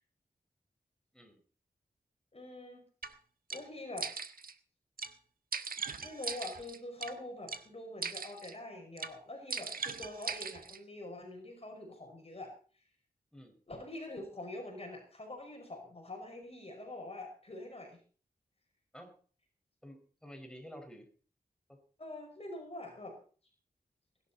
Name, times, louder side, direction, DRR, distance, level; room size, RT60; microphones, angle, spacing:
voice 1, 2.3-2.8 3.5-4.1 6.0-12.5 13.7-18.0 22.0-23.2, left 1 dB, 40° left, 3 dB, 5.3 m, -45 dB
sound 1, 3.0-3.1 3.5-3.6 4.0-4.5 5.0-5.1 5.5-7.1 7.5-7.6 8.0-8.5 9.0-9.1 9.5-10.8, right 5 dB, 70° right, 1.5 m, -39 dB
voice 2, 19.8-21.1 21.7-21.8, equal, 5° left, 4 dB, 5.5 m, -50 dB
21.0 x 12.0 x 4.2 m, 0.41 s
wide cardioid pair, 85°, 15 cm